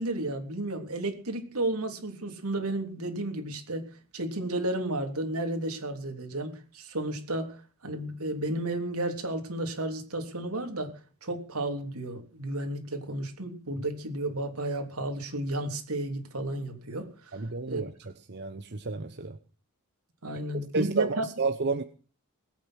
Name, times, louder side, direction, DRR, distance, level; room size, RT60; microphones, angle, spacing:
voice 1, 0.0-3.9 4.1-10.9 11.2-17.4 17.7-17.8 20.2-21.3, right 1 dB, 80° right, 5 dB, 3.3 m, -32 dB
voice 2, 17.3-17.9 18.3-19.4 20.7-21.8, right 3 dB, 50° right, 8 dB, 1.0 m, -30 dB
20.0 x 8.9 x 6.4 m, 0.38 s
head